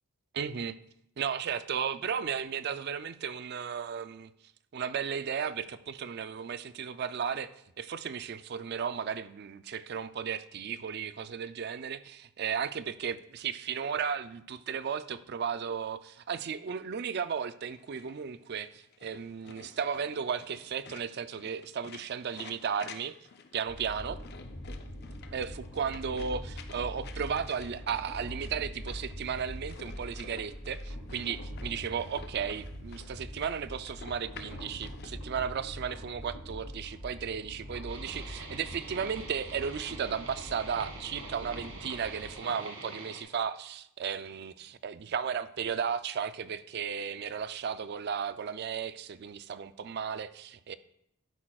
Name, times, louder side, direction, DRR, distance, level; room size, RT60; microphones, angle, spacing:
voice 1, 0.3-0.8 1.2-4.3 4.7-7.5 7.8-23.2 23.5-24.2 25.3-50.8, right 7 dB, 50° right, 14 dB, 0.4 m, -35 dB
sound 1, 17.7-35.1, left 5 dB, 45° left, 0.6 m, -52 dB
sound 2, 23.7-42.4, equal, 75° left, 2.4 m, -43 dB
sound 3, 37.9-43.2, right 3 dB, 75° right, 2.0 m, -45 dB
11.5 x 8.7 x 2.3 m, 0.74 s
head